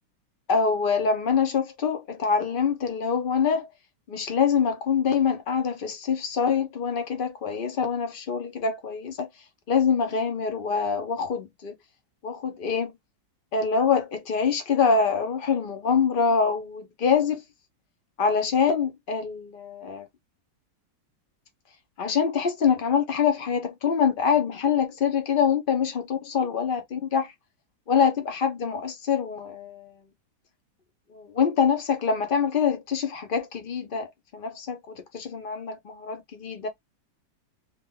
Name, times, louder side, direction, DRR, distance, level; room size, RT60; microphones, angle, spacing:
voice 1, 0.5-3.7 4.1-9.3 9.7-11.7 12.2-12.9 13.5-17.4 18.2-20.0 22.0-27.3 27.9-29.9 31.1-34.1 34.3-36.7, left 6 dB, 60° left, 0.5 m, -25 dB
3.7 x 2.3 x 3.7 m
omnidirectional pair, 2.1 m